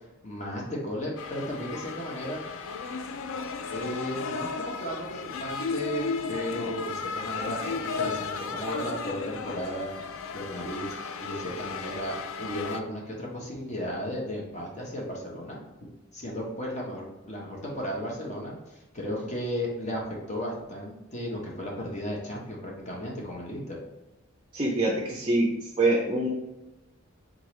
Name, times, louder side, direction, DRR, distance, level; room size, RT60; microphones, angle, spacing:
voice 1, 0.2-2.4 3.7-9.9 10.3-10.8 11.2-20.0 20.3-23.8, equal, 30° left, -2 dB, 1.0 m, -35 dB
sound 1, 1.2-12.8, left 4 dB, 70° left, 0.4 m, -34 dB
voice 2, 24.5-25.5 25.8-26.3, right 2 dB, 25° right, -2 dB, 0.5 m, -24 dB
3.7 x 3.7 x 3.1 m, 1.0 s
head